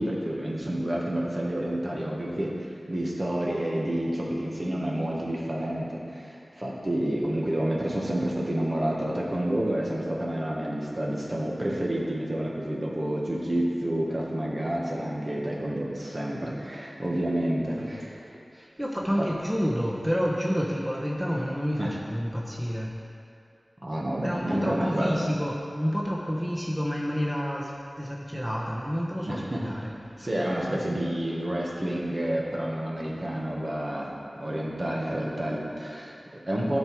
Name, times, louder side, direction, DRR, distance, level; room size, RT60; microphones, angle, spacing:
voice 1, 0.0-18.4 19.2-19.3 21.8-21.9 23.8-25.3 29.2-29.6 30.2-34.1 34.4-36.8, right 1 dB, 45° right, -3 dB, 1.5 m, -29 dB
voice 2, 17.7-18.0 18.5-22.9 24.2-29.9 30.6-30.8, equal, 5° right, -4 dB, 1.0 m, -29 dB
12.0 x 4.6 x 4.7 m, 2.5 s
wide cardioid pair, 50°, 0 cm